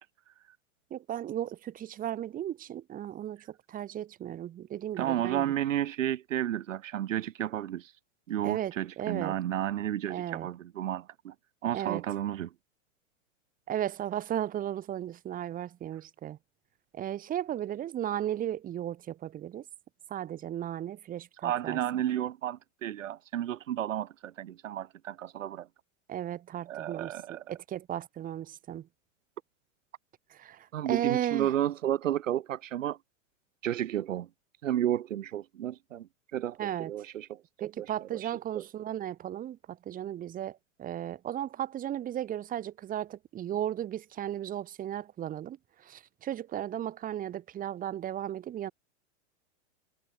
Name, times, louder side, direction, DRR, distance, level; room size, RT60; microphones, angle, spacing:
voice 1, 0.9-5.5 8.4-9.4 10.1-10.5 11.7-12.0 13.7-16.4 16.9-19.6 20.1-22.0 26.1-28.9 30.3-31.5 36.6-37.0 37.6-48.7, right 11 dB, 20° right, 6.0 m, -35 dB
voice 2, 5.0-7.9 8.3-11.3 11.6-12.5 21.4-25.7 26.7-27.4 30.7-33.0 33.6-34.3 34.6-37.9 38.1-38.2 38.5-38.6, right 11 dB, 80° right, 7.2 m, -32 dB
supercardioid pair, 160°, 38 cm